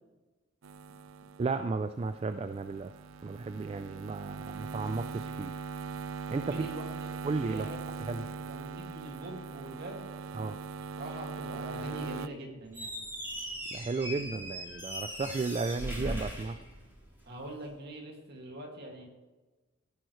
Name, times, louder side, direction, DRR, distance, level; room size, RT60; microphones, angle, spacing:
sound 1, 0.6-12.3, right 5 dB, 90° right, 0.5 m, -41 dB
voice 1, 1.4-2.9 3.2-5.5 6.3-6.7 7.2-7.7 8.1-8.2 10.4-10.6 13.7-16.6, right 3 dB, 30° right, 10 dB, 0.3 m, -34 dB
voice 2, 6.5-6.8 7.5-8.1 8.4-10.1 11.0-12.9 17.3-19.1, right 1 dB, 55° right, 1 dB, 2.2 m, -43 dB
Squeak, 12.7-17.3, equal, 10° right, 3.3 m, -39 dB
15.5 x 9.2 x 3.2 m, 1.2 s
head